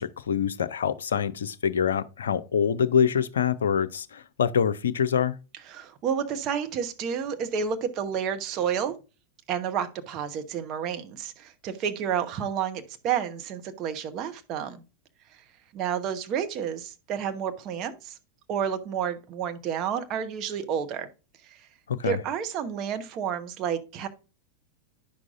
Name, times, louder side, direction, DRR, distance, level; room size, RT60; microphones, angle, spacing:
voice 1, 0.0-5.4 21.9-22.2, left 8 dB, 65° left, 0.5 m, -25 dB
voice 2, 5.7-8.9 9.5-14.8 15.7-18.2 18.5-21.1 21.5-21.6 22.0-24.1, right 8 dB, 35° right, 1.0 m, -30 dB
10.0 x 6.1 x 2.5 m
figure-of-eight pair, 90°, 0 cm